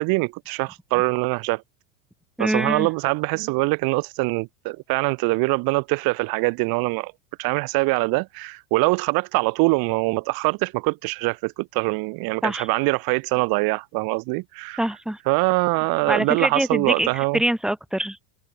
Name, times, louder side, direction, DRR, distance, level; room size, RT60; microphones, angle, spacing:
voice 1, 0.0-1.6 2.4-7.1 7.4-14.8 15.3-17.4, right 26 dB, 50° right, 2.7 m, -23 dB
voice 2, 2.4-2.9 12.4-12.7 14.8-15.2 16.1-18.3, right 1 dB, ahead, 3.3 m, -24 dB
supercardioid pair, 130°, 45 cm